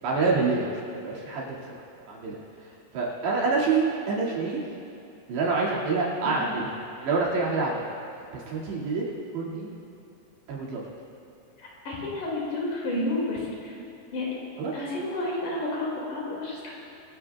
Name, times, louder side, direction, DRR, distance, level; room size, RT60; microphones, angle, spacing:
voice 1, 0.0-2.4 2.9-4.6 5.3-7.9 8.3-9.0 9.3-9.7 10.5-10.8 14.6-14.7, right 4 dB, 90° right, -5 dB, 4.4 m, -27 dB
voice 2, 11.6-13.8 14.1-14.3 14.7-16.8, left 2 dB, 55° left, -4 dB, 3.5 m, -31 dB
22.5 x 13.5 x 2.3 m, 2.8 s
omnidirectional pair, 4.8 m